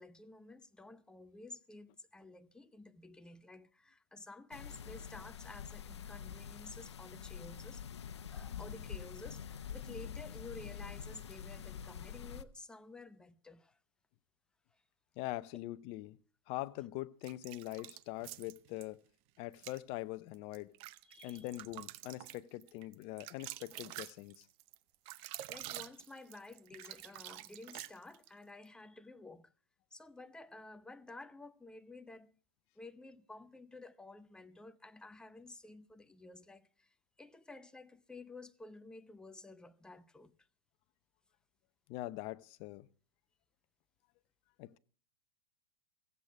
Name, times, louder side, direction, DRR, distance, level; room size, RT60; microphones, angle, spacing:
voice 1, 0.0-13.8 14.7-14.8 21.0-21.5 25.2-29.5 29.9-32.4 32.8-40.4, left 2 dB, 5° left, 0.7 m, -52 dB
sound 1, 4.5-12.4, left 8 dB, 90° left, 0.7 m, -46 dB
voice 2, 15.2-16.2 16.5-19.0 19.4-20.7 21.2-24.5 41.9-42.9 44.6-44.8, left 17 dB, 45° left, 0.7 m, -43 dB
sound 2, 17.2-18.9 19.5-19.8 20.3-28.3, right 16 dB, 45° right, 0.7 m, -48 dB
15.5 x 8.2 x 7.4 m
hypercardioid pair, 120°, 14 cm